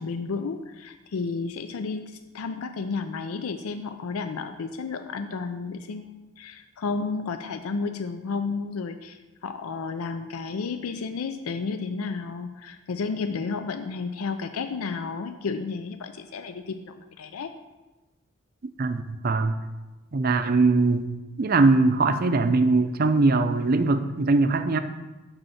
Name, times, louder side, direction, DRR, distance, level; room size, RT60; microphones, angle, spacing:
voice 1, 0.0-17.5, left 4 dB, 90° left, 8 dB, 0.5 m, -32 dB
voice 2, 18.8-19.5 20.1-21.1 21.4-24.8, right 3 dB, 45° right, 10 dB, 0.5 m, -21 dB
8.1 x 5.5 x 5.7 m, 1.1 s
head